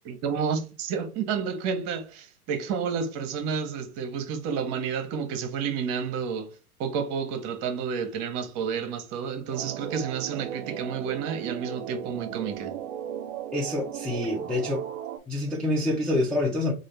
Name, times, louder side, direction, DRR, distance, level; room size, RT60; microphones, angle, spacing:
voice 1, 0.1-6.5 6.8-12.7, right 6 dB, 40° right, 1.0 m, -30 dB
sound 1, 9.5-15.2, right 10 dB, 60° right, 0.6 m, -36 dB
voice 2, 13.5-14.8 15.3-16.7, left 1 dB, ahead, 0.4 m, -26 dB
3.7 x 2.5 x 3.3 m
hypercardioid pair, 110°, 44 cm